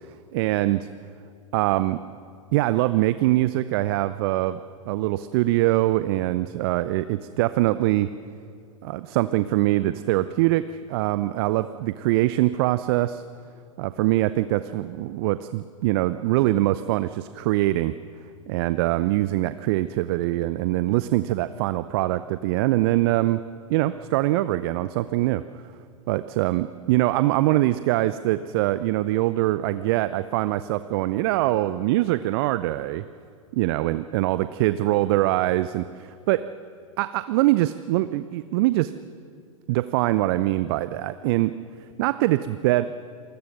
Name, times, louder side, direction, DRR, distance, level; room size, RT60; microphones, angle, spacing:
voice 1, 0.3-0.9 1.5-2.0 2.5-4.6 4.9-8.1 8.8-13.2 13.8-17.9 18.5-23.4 23.7-25.4 26.1-33.1 33.5-36.4 37.0-38.9 39.7-41.6 42.0-42.8, right 16 dB, 45° right, 14 dB, 0.6 m, -23 dB
27.5 x 20.0 x 6.6 m, 2.3 s
figure-of-eight pair, 100°, 18 cm